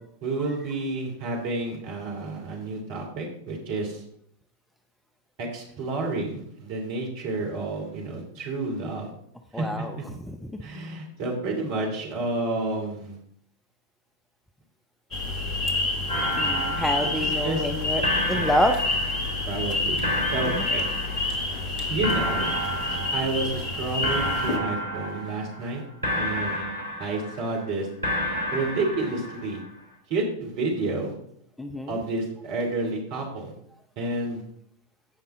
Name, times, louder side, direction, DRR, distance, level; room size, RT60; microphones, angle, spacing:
voice 1, 0.2-4.0 5.4-9.1 9.5-10.0 10.6-13.2 17.0-17.7 18.3-18.5 19.5-20.0 20.3-20.8 21.9-22.5 23.1-25.8 26.1-26.6 27.0-27.9 28.5-29.6 30.1-31.1 31.9-33.5 34.0-34.4, right 2 dB, 45° right, 1 dB, 3.0 m, -30 dB
voice 2, 9.5-10.6 16.4-18.8 20.5-20.7 31.6-32.0, equal, 5° left, 6 dB, 0.6 m, -27 dB
sound 1, 15.1-24.6, left 2 dB, 35° left, 1.6 m, -28 dB
sound 2, 16.1-17.7 18.0-19.7 20.0-21.7 22.0-23.7 24.0-25.7 26.0-27.7 28.0-29.7, equal, 75° right, 2.7 m, -30 dB
15.5 x 5.5 x 3.7 m, 0.69 s
figure-of-eight pair, 90°, 0 cm